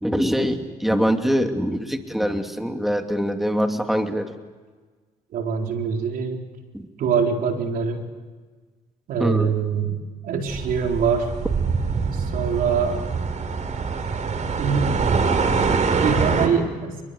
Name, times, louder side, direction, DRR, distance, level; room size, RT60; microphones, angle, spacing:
voice 1, 0.0-4.3 6.7-6.9 9.2-9.5, equal, ahead, 5 dB, 2.8 m, -23 dB
voice 2, 5.3-6.4 7.0-8.0 9.1-9.9 10.2-11.3 12.1-13.0 14.6-14.9 15.9-17.0, right 6 dB, 70° right, 3 dB, 4.3 m, -24 dB
sound 1, 10.5-16.5, right 5 dB, 50° right, 4.6 m, -24 dB
29.5 x 22.0 x 8.4 m, 1.4 s
supercardioid pair, 75°, 15 cm